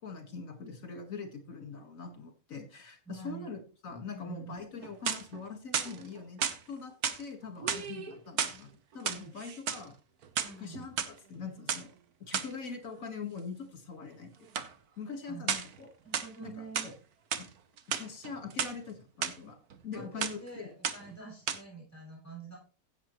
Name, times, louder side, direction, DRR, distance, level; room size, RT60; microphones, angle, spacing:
voice 1, 0.0-6.4 6.7-8.7 8.9-9.9 10.6-11.9 12.2-14.5 15.0-15.9 16.4-16.9 17.4-17.5 17.9-19.6 19.8-20.7, left 5 dB, 60° left, 5 dB, 2.2 m, -43 dB
voice 2, 3.1-3.5 4.1-4.5 10.4-10.9 15.2-15.5 16.0-16.9 19.9-22.6, right 5 dB, 10° left, -4 dB, 7.2 m, -46 dB
sound 1, 4.8-5.4 5.7-6.6 7.0-7.2 7.6-8.6 8.9-9.8 10.2-11.1 11.7-11.8 12.3-12.6 14.5-14.7 15.5-15.8 16.1-16.9 17.3-17.5 17.8-18.7 19.2-19.3 19.7-20.0 20.2-20.5 20.8-21.2 21.5-21.6, right 7 dB, 70° right, 1.5 m, -33 dB
15.5 x 8.0 x 3.1 m, 0.35 s
omnidirectional pair, 1.7 m